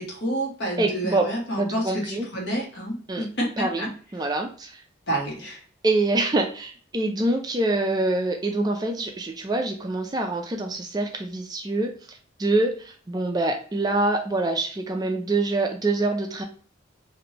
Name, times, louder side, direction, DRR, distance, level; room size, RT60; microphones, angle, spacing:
voice 1, 0.0-3.9 5.1-5.6, right 1 dB, 65° left, -2 dB, 1.2 m, -29 dB
voice 2, 0.8-1.3 1.6-2.3 3.1-3.3 3.6-3.8 4.1-4.8 5.8-11.9 12.4-16.4, right 2 dB, 20° right, 3 dB, 0.3 m, -25 dB
3.1 x 2.5 x 2.8 m, 0.43 s
head